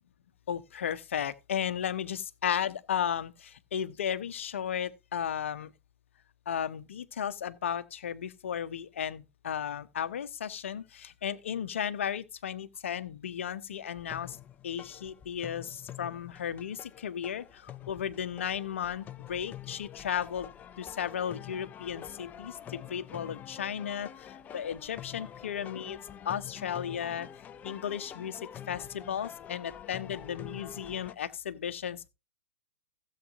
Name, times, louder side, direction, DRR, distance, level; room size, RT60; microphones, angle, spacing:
voice 1, 0.5-3.3 3.7-5.7 6.5-14.4 14.6-17.4 17.9-20.5 20.8-24.1 24.5-26.0 26.2-27.3 27.6-28.4 28.7-32.1, left 8 dB, 65° left, 1.0 m, -34 dB
sound 1, 13.9-31.1, left 10 dB, 20° left, 0.6 m, -46 dB
16.0 x 7.6 x 2.6 m
figure-of-eight pair, 105°, 7 cm